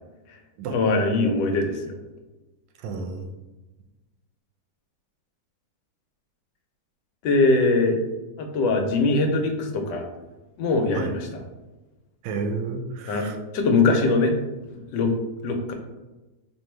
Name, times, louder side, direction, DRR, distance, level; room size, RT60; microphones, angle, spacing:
voice 1, 0.7-2.0 7.2-8.0 8.4-10.0 10.6-11.3 13.1-13.3 13.5-14.3 14.9-15.1 15.4-15.7, left 3 dB, 80° left, 4 dB, 1.2 m, -21 dB
voice 2, 2.8-3.3 10.9-11.2 12.2-13.4, right 4 dB, 85° right, 5 dB, 1.3 m, -31 dB
4.4 x 2.9 x 3.2 m, 1.1 s
omnidirectional pair, 1.9 m